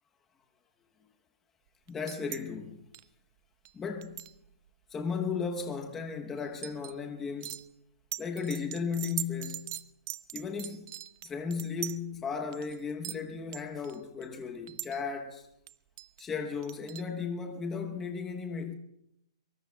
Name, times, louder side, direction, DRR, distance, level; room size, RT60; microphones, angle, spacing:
voice 1, 1.9-2.8 3.7-4.2 4.9-7.6 8.2-9.8 10.3-11.0 11.2-15.5 16.2-18.7, left 5 dB, 10° left, 0.9 m, -35 dB
sound 1, 1.9-2.4 2.9-3.0 3.7-3.8 4.0-4.7 6.4-7.0 7.4-7.7 8.1-12.0 12.5-12.8 13.0-13.2 13.5-14.2 14.7-15.0 15.7-16.2 16.6-17.0, right 15 dB, 35° right, 0.5 m, -40 dB
23.5 x 23.0 x 2.3 m
hypercardioid pair, 165°, 3 cm